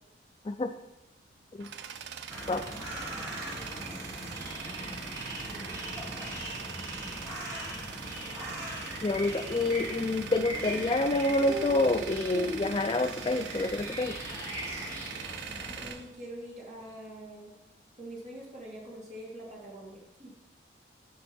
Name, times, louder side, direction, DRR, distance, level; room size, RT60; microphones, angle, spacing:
Tools, 1.1-16.9, right 7 dB, 85° right, 0.5 m, -43 dB
sound 1, 2.3-15.9, equal, 20° right, 2.1 m, -39 dB
voice 1, 9.0-14.2, left 2 dB, 30° left, 6 dB, 0.3 m, -28 dB
voice 2, 15.8-17.5 18.0-20.3, right 1 dB, 40° right, -4 dB, 2.3 m, -44 dB
7.7 x 5.5 x 5.2 m, 0.91 s
head